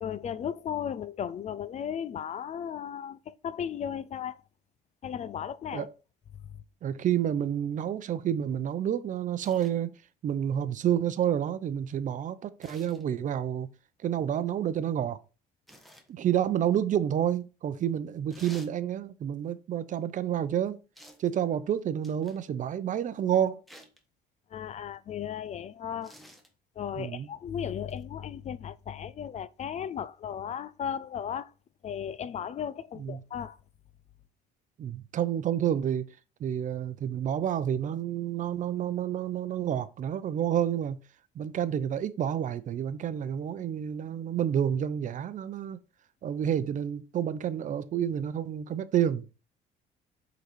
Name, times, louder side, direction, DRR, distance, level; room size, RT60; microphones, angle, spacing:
voice 1, 0.0-4.4 5.0-5.9 6.3-6.6 24.5-26.2 26.8-31.5 31.8-33.6, left 8 dB, 40° left, 0.5 m, -35 dB
voice 2, 6.8-9.9 10.2-13.7 14.0-15.2 16.1-20.8 21.2-23.6 27.0-27.3 33.0-33.2 34.8-36.1 36.4-41.0 41.3-45.8 46.2-49.2, right 9 dB, 50° right, 0.7 m, -29 dB
sound 1, 9.4-9.7 12.6-13.0 15.7-16.1 18.3-18.7 21.0-21.3 22.0-22.4 23.7-24.0 26.0-26.5 27.9-28.0, equal, ahead, 1.2 m, -52 dB
7.9 x 4.0 x 4.5 m
cardioid pair, 110°, 17 cm